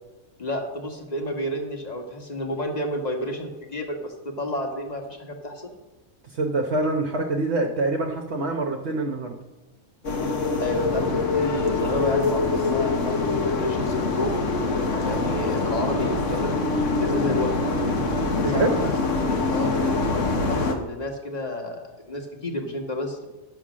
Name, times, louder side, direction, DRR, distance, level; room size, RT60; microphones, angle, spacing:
voice 1, 0.4-5.7 10.6-14.5 15.0-17.7 18.4-18.9 19.2-23.2, left 1 dB, 30° left, 2 dB, 1.7 m, -31 dB
voice 2, 6.2-9.3 18.4-18.7, right 2 dB, 55° right, 2 dB, 1.2 m, -25 dB
sound 1, 10.0-20.8, left 3 dB, 60° left, 1.6 m, -24 dB
11.5 x 7.2 x 6.2 m, 1.1 s
omnidirectional pair, 1.5 m